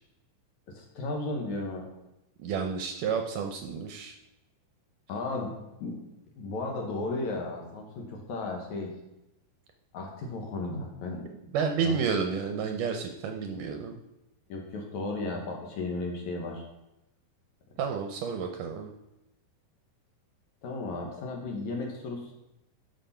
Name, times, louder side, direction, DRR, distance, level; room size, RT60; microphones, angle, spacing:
voice 1, 0.7-1.9 5.1-6.0 6.4-9.0 9.9-11.3 11.8-12.0 14.5-16.6 20.6-22.3, left 2 dB, 60° left, 1 dB, 2.4 m, -35 dB
voice 2, 2.4-4.1 11.5-14.0 17.8-18.9, right 6 dB, 75° right, 4 dB, 2.0 m, -30 dB
11.5 x 5.3 x 5.6 m, 0.91 s
omnidirectional pair, 4.4 m